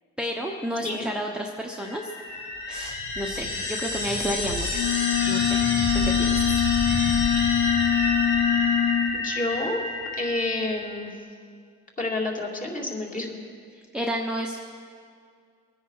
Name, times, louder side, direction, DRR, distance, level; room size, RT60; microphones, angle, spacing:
voice 1, 0.2-2.1 2.7-4.8 5.3-5.6 6.0-6.5 13.9-14.7, equal, 5° right, 0 dB, 1.1 m, -31 dB
sound 1, 1.8-11.0, left 2 dB, 80° left, 2.8 m, -29 dB
sound 2, 4.7-9.2, left 10 dB, 60° left, 0.9 m, -23 dB
sound 3, 5.8-10.1, right 7 dB, 50° right, 1.0 m, -36 dB
voice 2, 9.1-9.8 10.1-11.1 12.0-13.4, left 2 dB, 25° left, -1 dB, 2.7 m, -29 dB
23.0 x 9.9 x 4.8 m, 2.2 s
cardioid pair, 90°, 30 cm